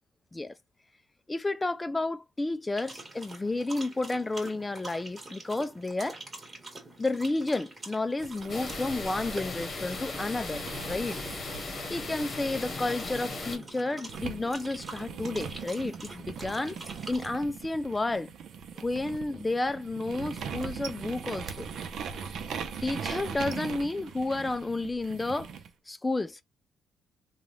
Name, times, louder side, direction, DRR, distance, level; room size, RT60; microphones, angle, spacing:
voice 1, 1.3-6.2 7.0-11.2 11.9-16.8 17.1-18.3 18.8-21.7 22.8-25.5 25.9-26.4, left 2 dB, 15° left, 0.4 m, -31 dB
sound 1, 2.8-17.4, right 2 dB, 25° right, 1.7 m, -46 dB
sound 2, 8.2-13.6 14.1-25.7, right 6 dB, 70° right, 0.7 m, -41 dB
sound 3, 8.5-13.6, left 3 dB, 40° left, 1.1 m, -37 dB
3.2 x 2.3 x 2.5 m
cardioid pair, 90°, 0 cm